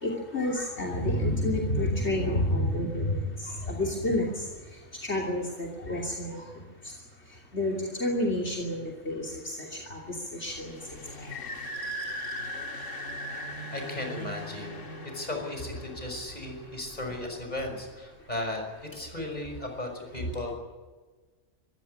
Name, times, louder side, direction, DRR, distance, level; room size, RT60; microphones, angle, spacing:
voice 1, 0.0-4.3 5.0-6.4 7.5-10.0 10.4-10.8 11.2-11.3, left 1 dB, 60° left, -1 dB, 3.3 m, -29 dB
sound 1, 10.5-17.8, equal, 80° left, 2.5 m, -39 dB
voice 2, 13.7-14.8 15.1-20.5, left 1 dB, 35° left, 3 dB, 6.0 m, -36 dB
24.5 x 15.5 x 9.9 m, 1.3 s
omnidirectional pair, 1.3 m